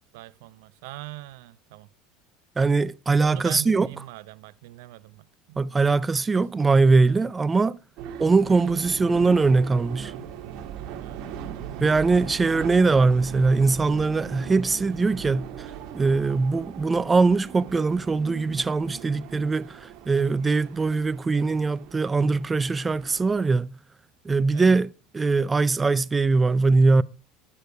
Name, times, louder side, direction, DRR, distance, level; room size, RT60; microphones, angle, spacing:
voice 1, 0.1-1.9 3.2-6.0 7.0-7.2 8.0-8.3 10.0-10.2 11.0-11.2 21.3-21.6 24.5-24.7, right 18 dB, 80° right, 0.5 m, -42 dB
voice 2, 2.6-3.9 5.6-7.8 8.2-10.1 11.8-23.7 24.2-27.0, right 3 dB, 15° right, 0.4 m, -22 dB
sound 1, 8.0-23.5, right 8 dB, 60° right, 1.4 m, -39 dB
10.0 x 6.7 x 4.5 m
supercardioid pair, 125°, 0 cm